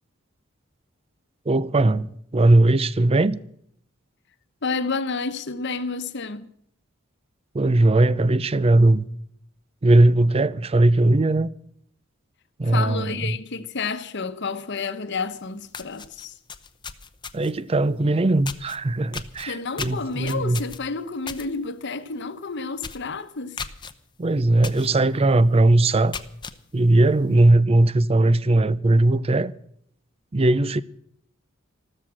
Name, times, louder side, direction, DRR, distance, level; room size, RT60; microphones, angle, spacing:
voice 1, 1.5-3.4 7.5-9.1 9.8-11.5 12.6-13.4 17.3-20.6 24.2-26.1 26.7-29.5 30.3-30.8, right 2 dB, 30° right, 0.5 m, -19 dB
voice 2, 4.6-6.5 12.7-16.3 19.5-23.6, left 4 dB, 60° left, 1.0 m, -30 dB
sound 1, 15.3-15.4 15.7-17.6 18.4-18.8 19.1-21.5 21.8-22.1 22.4-22.5 22.8-23.1 23.6-23.9 24.6-24.9 25.3-25.4 25.9-26.6, left 5 dB, 20° left, 0.8 m, -35 dB
14.0 x 13.5 x 6.4 m
head